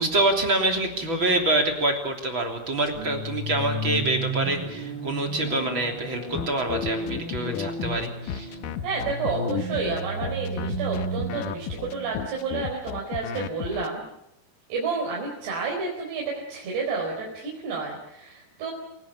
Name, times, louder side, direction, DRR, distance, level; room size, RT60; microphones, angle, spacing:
voice 1, 0.0-8.5, right 2 dB, 30° right, 3 dB, 3.6 m, -26 dB
sound 1, 2.9-12.8, right 1 dB, 25° left, 8.0 m, -34 dB
sound 2, 6.3-13.9, left 10 dB, 65° left, 2.3 m, -33 dB
voice 2, 8.8-14.0 14.7-18.7, right 4 dB, 80° right, -2 dB, 6.6 m, -30 dB
28.5 x 18.0 x 8.5 m, 0.81 s
omnidirectional pair, 4.8 m